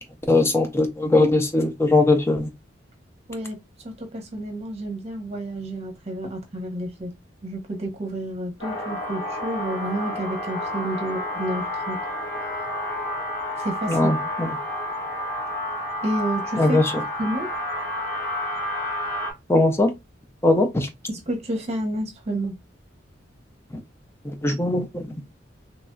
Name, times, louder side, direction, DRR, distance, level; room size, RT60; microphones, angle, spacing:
voice 1, 0.3-2.5 13.9-14.5 16.6-16.9 19.5-19.9 20.4-20.9 24.4-25.0, left 2 dB, 15° left, 0.4 m, -20 dB
voice 2, 3.8-7.1 7.4-12.0 13.6-14.3 16.0-17.5 21.1-22.5, right 1 dB, 35° right, 0.8 m, -30 dB
sound 1, 8.6-19.3, left 1 dB, 85° left, 1.4 m, -30 dB
3.0 x 2.6 x 2.2 m
head